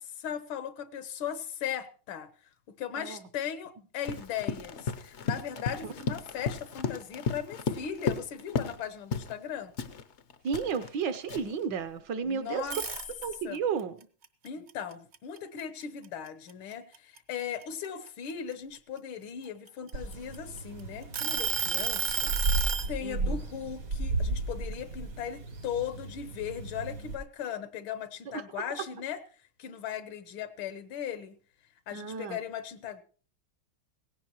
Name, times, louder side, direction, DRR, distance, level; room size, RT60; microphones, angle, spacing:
voice 1, 0.0-2.3 2.7-9.7 12.2-12.8 13.4-13.6 14.4-22.3 22.9-31.4 31.9-33.0, left 8 dB, 80° left, 1.7 m, -38 dB
Run, 4.0-8.8 9.1-9.4 9.8-11.6, left 5 dB, 65° left, 0.7 m, -34 dB
voice 2, 10.4-12.8 13.2-14.0 23.0-23.4 28.3-28.4 31.9-32.4, right 6 dB, 65° right, 1.4 m, -33 dB
sound 1, 12.6-13.6 14.0-15.8 16.3-16.5 16.9-18.8 19.5-20.6 21.1-22.9, right 5 dB, 50° right, 0.8 m, -31 dB
sound 2, 19.9-27.2, right 2 dB, 80° right, 4.0 m, -34 dB
17.5 x 16.0 x 3.0 m
omnidirectional pair, 2.2 m